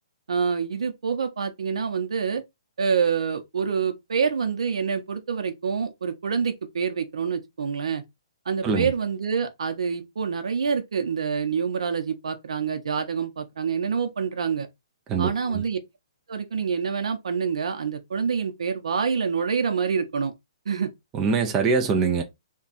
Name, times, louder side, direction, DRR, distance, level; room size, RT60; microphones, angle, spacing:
voice 1, 0.3-2.4 2.8-8.0 8.5-14.7 15.2-15.8 16.3-20.3 20.7-20.9, right 6 dB, 75° right, 0.7 m, -26 dB
voice 2, 15.1-15.6 21.1-22.2, right 5 dB, 15° right, 0.4 m, -23 dB
3.5 x 2.3 x 4.0 m
hypercardioid pair, 175°, 3 cm